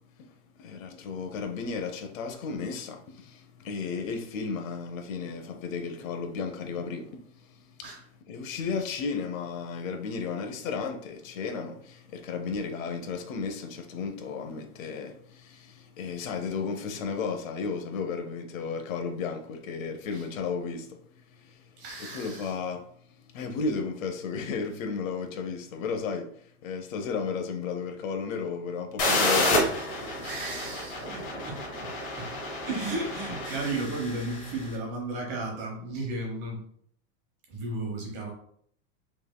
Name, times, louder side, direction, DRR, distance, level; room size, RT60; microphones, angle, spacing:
voice 1, 0.6-7.9 8.3-21.0 21.3-21.6 22.0-22.8 23.3-26.3 26.6-29.8, left 5 dB, 80° left, 1.0 m, -34 dB
voice 2, 21.8-22.5 30.2-32.3 32.6-36.6 37.5-38.3, right 2 dB, 25° right, 1.0 m, -34 dB
sound 1, 29.0-34.7, left 1 dB, 20° left, 0.8 m, -29 dB
5.5 x 3.4 x 2.3 m
supercardioid pair, 175°, 39 cm